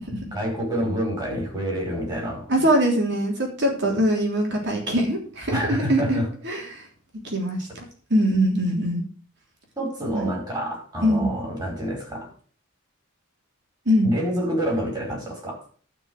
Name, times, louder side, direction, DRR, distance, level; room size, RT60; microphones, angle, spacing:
voice 1, 0.3-2.5 5.5-6.3 9.8-12.3 14.0-15.6, equal, 20° right, -1 dB, 4.9 m, -27 dB
voice 2, 2.5-6.8 7.2-7.6 8.1-9.0 10.1-10.3 11.0-11.3 13.9-14.1, equal, 55° right, 0 dB, 3.4 m, -22 dB
12.0 x 4.8 x 7.8 m, 0.43 s
head